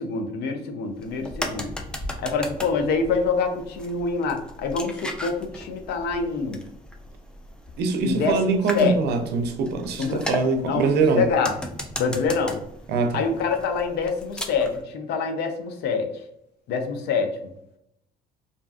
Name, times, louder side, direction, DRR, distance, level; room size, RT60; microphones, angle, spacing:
voice 1, 0.0-1.7 2.2-6.6 8.0-8.4 8.7-9.0 10.0-10.2 10.6-10.8 11.2-11.5 12.0-12.6 13.1-16.1 16.7-17.3, left 5 dB, 75° left, 0.5 m, -25 dB
sound 1, 1.0-14.8, left 1 dB, 5° left, 0.3 m, -37 dB
voice 2, 7.8-11.3 12.9-13.2, right 4 dB, 75° right, 0.5 m, -23 dB
2.5 x 2.4 x 2.3 m
cardioid pair, 110°, 17 cm